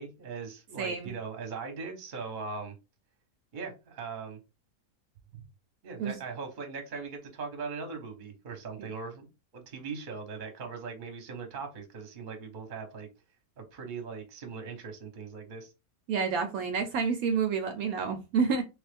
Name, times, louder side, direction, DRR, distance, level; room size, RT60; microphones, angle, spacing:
voice 1, 0.0-2.8 3.5-4.4 5.8-9.3 9.5-13.1 13.6-15.7, right 5 dB, 40° right, 4 dB, 0.9 m, -40 dB
voice 2, 0.8-1.1 6.0-6.2 8.8-8.9 16.1-18.6, right 5 dB, 75° right, 6 dB, 1.0 m, -29 dB
3.3 x 2.4 x 3.3 m, 0.27 s
omnidirectional pair, 1.6 m